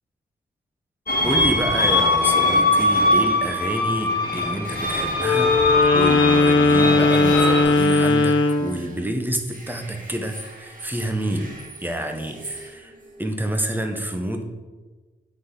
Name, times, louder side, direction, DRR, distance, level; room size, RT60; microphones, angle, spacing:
sound 1, 1.1-7.6, left 2 dB, 50° left, 1.5 m, -21 dB
voice 1, 1.2-5.6 5.9-12.9 13.2-14.4, right 1 dB, 10° right, 5 dB, 0.8 m, -28 dB
sound 2, 4.6-9.1 9.3-13.4, right 2 dB, 45° right, 1.6 m, -41 dB
Wind instrument woodwind instrument, 5.2-8.7, left 3 dB, 75° left, 0.6 m, -18 dB
8.3 x 4.1 x 3.8 m, 1.3 s
cardioid pair, 85°, 19 cm